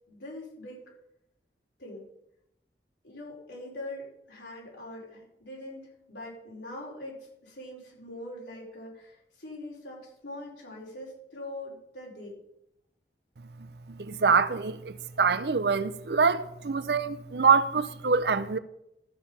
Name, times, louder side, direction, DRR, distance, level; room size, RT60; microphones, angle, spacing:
voice 1, 0.1-0.9 1.8-2.0 3.0-12.4, left 1 dB, 90° left, 4.8 m, -42 dB
voice 2, 13.6-18.6, right 5 dB, 70° right, 0.6 m, -25 dB
13.5 x 7.2 x 5.5 m
head